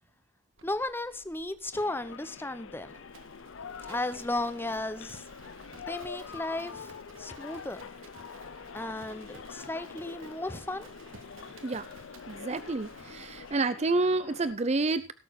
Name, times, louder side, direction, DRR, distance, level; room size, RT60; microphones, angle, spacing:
Livestock farm animals working animals, 0.5-13.6, right 3 dB, 90° right, 1.7 m, -54 dB
voice 1, 0.6-2.9 3.8-5.2 5.9-7.8 8.7-10.9, left 2 dB, 10° left, 12 dB, 0.8 m, -35 dB
sound 1, 1.7-14.5, left 6 dB, 80° left, 0.5 m, -45 dB
voice 2, 12.3-15.1, right 3 dB, 35° right, 13 dB, 0.5 m, -29 dB
17.0 x 6.9 x 4.8 m, 0.35 s
head